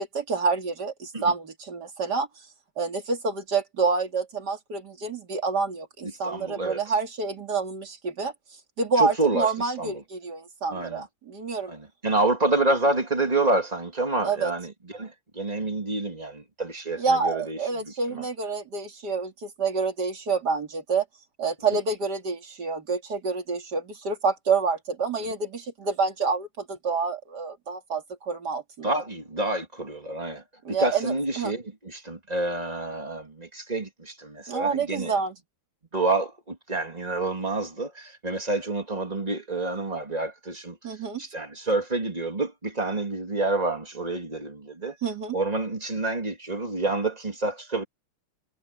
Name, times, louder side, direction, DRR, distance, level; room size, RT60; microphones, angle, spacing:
voice 1, 0.0-2.3 2.8-8.3 8.8-11.7 14.2-14.5 17.0-21.0 21.4-28.9 30.6-31.5 34.5-35.3 40.8-41.2 45.0-45.4, right 4 dB, 50° right, 3.1 m, -28 dB
voice 2, 6.0-6.9 9.0-10.0 10.7-11.1 11.7-18.3 25.2-25.3 28.8-35.2 35.9-45.0 45.3-47.8, right 2 dB, 15° right, 3.1 m, -28 dB
omnidirectional pair, 2.4 m